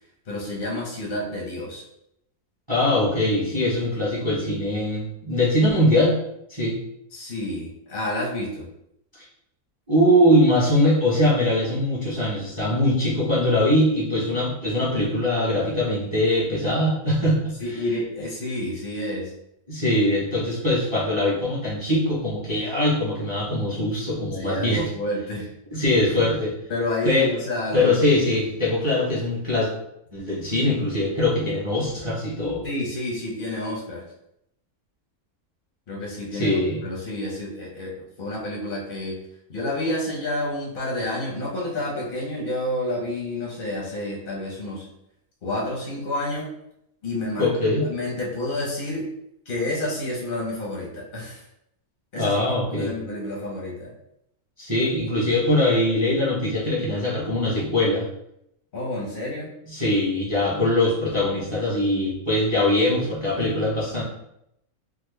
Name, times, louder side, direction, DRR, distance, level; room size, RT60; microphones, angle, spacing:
voice 1, 0.3-1.8 7.1-8.7 17.6-19.3 24.4-25.5 26.7-28.0 32.6-34.0 35.9-36.6 36.8-39.2 39.5-44.9 45.4-46.5 47.0-49.1 49.5-51.4 52.1-52.3 52.7-53.9 58.7-59.5, left 1 dB, 50° left, -3 dB, 0.7 m, -29 dB
voice 2, 2.7-6.2 6.5-6.8 9.9-17.8 19.7-24.8 25.7-26.5 27.0-27.3 27.7-29.7 30.1-32.6 36.3-36.8 47.4-47.9 52.1-52.9 54.6-58.1 59.7-64.0, left 1 dB, 20° right, -8 dB, 0.8 m, -22 dB
3.6 x 2.1 x 3.2 m, 0.79 s
omnidirectional pair, 1.6 m